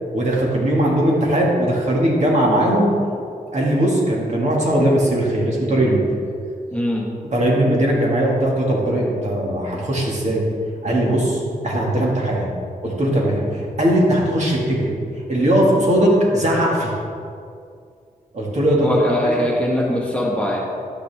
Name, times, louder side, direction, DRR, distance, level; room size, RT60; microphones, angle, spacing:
voice 1, 0.1-2.9 3.5-6.1 7.3-10.4 10.8-12.5 12.8-14.9 15.3-16.9 18.3-18.9 19.2-19.3, right 1 dB, 50° right, -3 dB, 2.2 m, -19 dB
voice 2, 6.7-7.1 18.8-20.6, left 1 dB, 10° left, -4 dB, 1.8 m, -21 dB
11.5 x 9.8 x 3.6 m, 2.3 s
wide cardioid pair, 130°, 15 cm